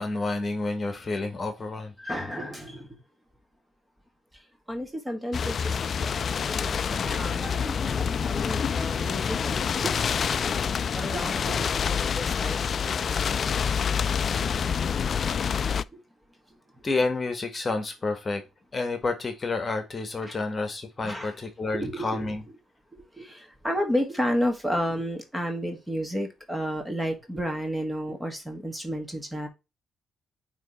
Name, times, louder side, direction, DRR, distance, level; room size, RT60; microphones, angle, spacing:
voice 1, 0.0-1.9 16.8-18.4 18.7-22.4, left 3 dB, 30° left, 7 dB, 1.6 m, -29 dB
voice 2, 2.0-3.0 4.3-4.4 4.7-10.5 10.9-12.7 15.9-16.0 16.8-16.9 20.3-20.4 21.0-21.3 21.7-22.3 22.9-29.5, equal, 10° right, 4 dB, 1.7 m, -32 dB
sound 1, 5.3-15.8, left 7 dB, 50° left, 0.3 m, -27 dB
9.0 x 3.2 x 4.4 m, 0.26 s
cardioid pair, 90°, 0 cm